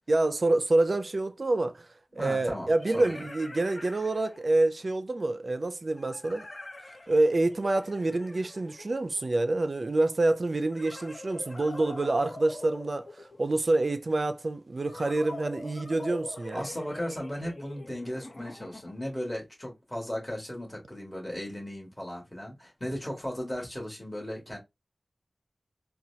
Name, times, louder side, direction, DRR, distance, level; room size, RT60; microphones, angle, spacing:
voice 1, 0.1-1.9 2.2-6.5 7.1-16.6, right 2 dB, 60° right, 0.4 m, -27 dB
sound 1, 0.9-1.0 2.4-4.7 6.0-9.4 10.7-13.7 14.9-19.2, left 2 dB, 55° left, 0.9 m, -44 dB
voice 2, 2.2-3.2 16.5-24.6, equal, 20° left, 1.9 m, -36 dB
4.3 x 2.2 x 2.7 m
wide cardioid pair, 70°, 0 cm